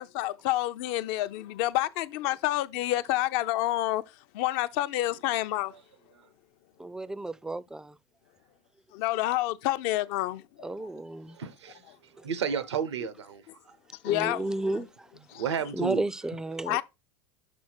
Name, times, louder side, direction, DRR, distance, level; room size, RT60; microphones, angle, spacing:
voice 1, 0.0-4.0 4.3-5.7 8.9-10.9 14.0-14.8 15.3-15.4 16.6-16.8, left 15 dB, 60° left, 0.6 m, -29 dB
voice 2, 6.8-8.0 10.6-11.4 14.1-15.1 15.7-16.8, right 2 dB, 5° right, 0.4 m, -32 dB
voice 3, 11.4-11.8 12.2-13.4 15.3-16.0, right 7 dB, 85° right, 0.8 m, -31 dB
6.2 x 4.0 x 4.4 m
hypercardioid pair, 85°, 14 cm